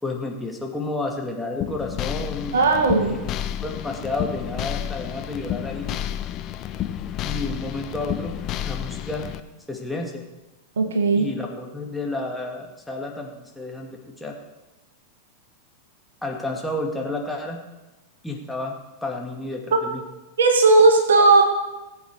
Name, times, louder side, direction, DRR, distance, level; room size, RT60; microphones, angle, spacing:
voice 1, 0.0-2.6 3.0-3.3 3.6-5.9 7.2-8.4 8.6-9.3 9.7-10.2 11.2-14.4 16.2-17.6 18.2-20.0, left 2 dB, 5° left, 0 dB, 2.1 m, -31 dB
sound 1, 1.6-9.4, left 11 dB, 35° left, 0.8 m, -30 dB
voice 2, 2.5-3.2 10.8-11.3 20.4-21.4, right 3 dB, 65° right, 5 dB, 2.0 m, -16 dB
19.5 x 8.1 x 4.8 m, 1.1 s
figure-of-eight pair, 90°, 0 cm